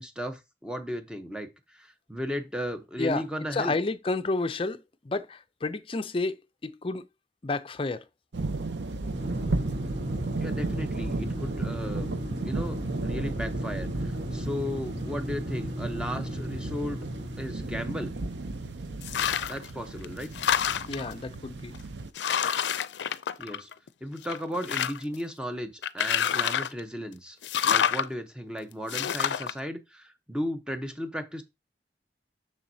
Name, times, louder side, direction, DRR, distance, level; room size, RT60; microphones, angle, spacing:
voice 1, 0.0-3.7 10.4-12.1 12.4-12.8 13.0-13.9 14.3-17.0 17.4-18.1 19.5-20.3 23.4-23.7 24.0-27.4 27.7-31.4, equal, 5° right, 0.8 m, -35 dB
voice 2, 3.5-7.0 7.4-8.0 20.9-21.7, left 3 dB, 30° left, 0.5 m, -30 dB
sound 1, 8.3-22.1, right 3 dB, 85° right, 0.7 m, -34 dB
sound 2, 9.1-18.9, equal, 35° right, 1.3 m, -36 dB
sound 3, 19.0-19.7 20.0-21.1 21.7-21.8 22.2-23.9 24.2-25.2 25.8-26.8 27.4-28.1 28.9-29.5, left 8 dB, 85° left, 0.4 m, -27 dB
7.2 x 6.2 x 2.8 m
head